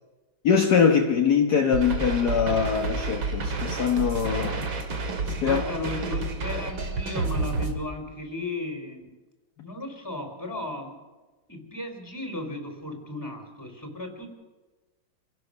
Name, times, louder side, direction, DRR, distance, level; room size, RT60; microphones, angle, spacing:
voice 1, 0.4-4.6 5.3-5.6, left 6 dB, 55° left, 3 dB, 1.7 m, -23 dB
sound 1, 1.7-7.7, right 3 dB, 90° right, 3.0 m, -30 dB
voice 2, 5.4-9.1 9.6-11.0 11.5-14.3, left 2 dB, 10° left, 3 dB, 3.8 m, -35 dB
26.5 x 17.0 x 6.5 m, 1.2 s
omnidirectional pair, 2.1 m